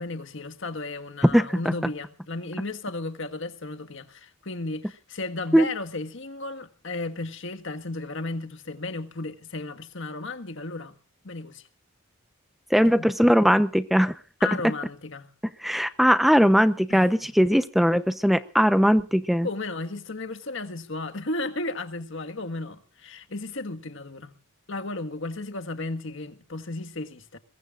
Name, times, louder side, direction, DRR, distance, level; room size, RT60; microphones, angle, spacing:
voice 1, 0.0-10.9 11.2-11.7 12.8-13.1 14.4-15.3 16.9-17.3 19.4-24.3 24.7-27.4, left 2 dB, 60° left, 1.7 m, -34 dB
voice 2, 12.7-14.1 15.6-19.5, equal, ahead, 0.8 m, -20 dB
22.5 x 22.5 x 2.5 m
head